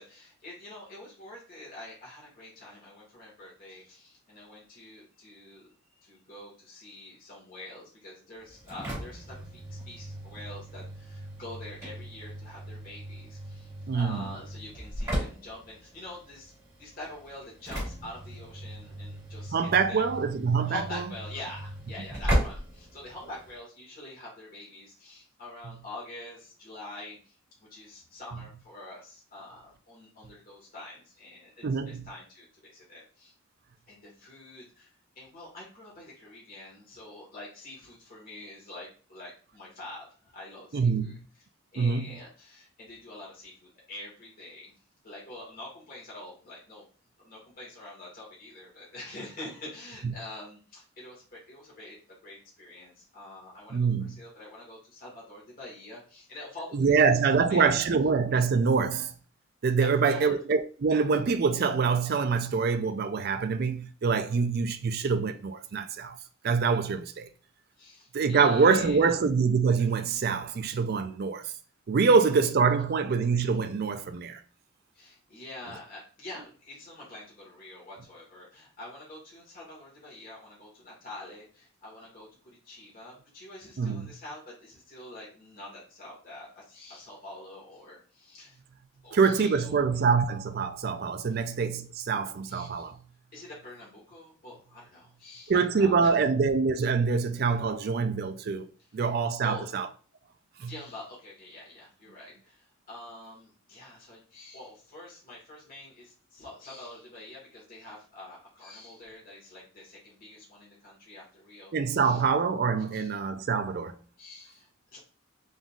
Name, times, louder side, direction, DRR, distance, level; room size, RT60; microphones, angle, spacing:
voice 1, 0.0-5.7 6.0-16.5 16.8-20.0 20.7-33.3 33.9-41.2 41.7-44.7 45.0-46.9 47.2-53.9 54.2-57.7 59.8-60.4 67.8-69.1 74.9-88.6 89.0-89.8 91.3-91.4 92.5-92.9 93.3-96.1 99.4-99.7 100.6-112.2 112.9-113.1 114.2-115.0, left 1 dB, 45° left, 1.8 m, -46 dB
Engine / Slam, 8.4-23.6, equal, 15° right, 2.0 m, -36 dB
voice 2, 13.9-14.3 19.5-21.0 25.6-25.7 28.3-28.4 31.6-32.0 40.7-41.2 41.8-42.2 50.0-50.1 53.7-54.2 56.7-59.1 59.6-66.2 66.4-67.3 68.1-71.5 71.9-74.4 83.8-84.1 89.1-93.0 95.5-98.7 98.9-99.9 100.6-100.7 111.7-113.9, right 5 dB, 50° right, 0.4 m, -25 dB
3.8 x 3.7 x 2.4 m
head